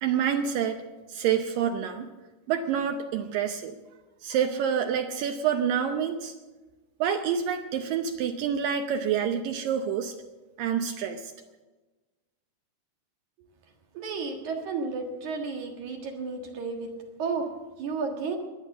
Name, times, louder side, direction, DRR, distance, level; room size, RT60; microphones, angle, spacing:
voice 1, 0.0-0.8 1.1-2.1 2.5-3.8 4.2-6.3 7.0-10.2 10.6-11.3, right 8 dB, 85° right, 6 dB, 1.9 m, -27 dB
voice 2, 13.9-16.9 17.2-17.5 17.8-18.4, right 4 dB, 55° right, 3 dB, 2.6 m, -32 dB
23.0 x 9.2 x 6.7 m, 1.2 s
omnidirectional pair, 5.0 m